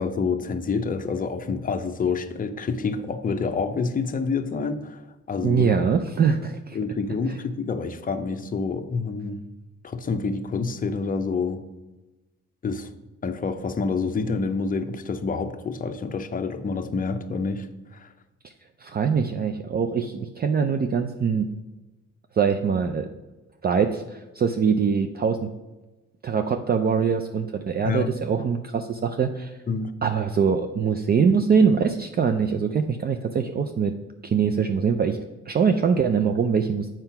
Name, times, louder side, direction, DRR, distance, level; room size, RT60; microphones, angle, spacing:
voice 1, 0.0-5.9 6.7-9.4 9.8-11.6 12.6-12.9 13.2-17.7 17.9-18.1 27.8-28.1 29.7-29.9, left 4 dB, 30° left, 7 dB, 0.6 m, -28 dB
voice 2, 5.4-6.8 7.3-7.4 18.8-21.5 22.3-23.1 23.6-25.5 26.2-29.6 30.0-33.9 34.2-36.9, right 6 dB, 35° right, 7 dB, 0.4 m, -23 dB
7.7 x 4.5 x 5.7 m, 1.1 s
cardioid pair, 120°, 29 cm